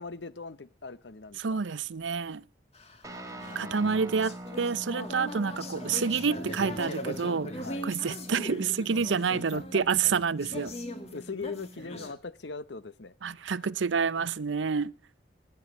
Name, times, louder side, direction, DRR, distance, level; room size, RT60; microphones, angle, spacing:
voice 1, 0.0-1.6 3.0-3.9 7.6-7.9 9.3-9.8 11.1-13.7, left 4 dB, 70° left, 0.9 m, -41 dB
voice 2, 1.4-2.4 3.5-7.5 7.8-10.7 13.2-14.9, right 5 dB, 85° right, 0.6 m, -28 dB
sound 1, 2.8-12.1, left 1 dB, 35° left, 2.1 m, -40 dB
Guitar, 3.0-12.1, right 1 dB, 20° right, 1.8 m, -44 dB
19.5 x 11.0 x 5.3 m
head